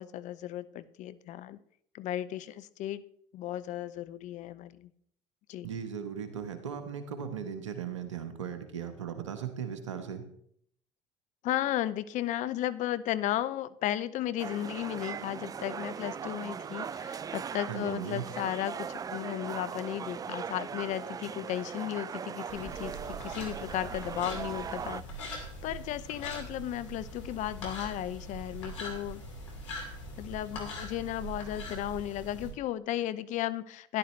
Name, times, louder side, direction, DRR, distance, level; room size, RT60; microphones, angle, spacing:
voice 1, 0.0-1.6 1.9-3.0 3.3-4.9 5.5-5.7 11.4-29.2 29.8-34.0, left 12 dB, 55° left, 16 dB, 0.6 m, -35 dB
voice 2, 5.6-10.2 17.7-18.2, right 8 dB, 85° right, 8 dB, 1.2 m, -37 dB
sound 1, 14.4-25.0, right 7 dB, 25° right, 0.3 m, -39 dB
sound 2, 22.5-32.5, equal, 85° left, 2.4 m, -42 dB
13.0 x 11.0 x 3.2 m, 0.66 s
hypercardioid pair, 65°, 15 cm